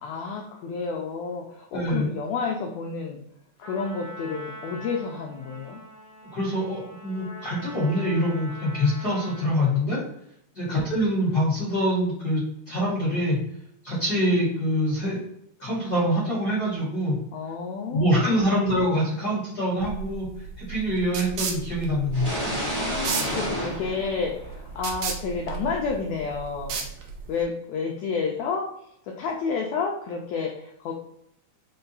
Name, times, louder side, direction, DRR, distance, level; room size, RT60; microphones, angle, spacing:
voice 1, 0.0-3.2 3.6-5.8 10.6-10.9 17.3-18.5 22.7-26.9 27.3-28.7 29.1-30.9, left 5 dB, 85° left, 1 dB, 1.5 m, -30 dB
voice 2, 1.7-2.1 6.3-10.0 10.5-13.4 13.8-15.2 15.6-17.2 17.9-20.3 20.6-22.3, equal, 40° left, -7 dB, 1.7 m, -25 dB
Trumpet, 3.6-9.8, right 1 dB, 55° left, 2.6 m, -43 dB
sound 1, 19.8-27.4, right 5 dB, 80° right, 1.4 m, -34 dB
sound 2, 22.1-24.9, equal, 45° right, 0.4 m, -30 dB
5.4 x 2.3 x 3.9 m, 0.75 s
omnidirectional pair, 3.7 m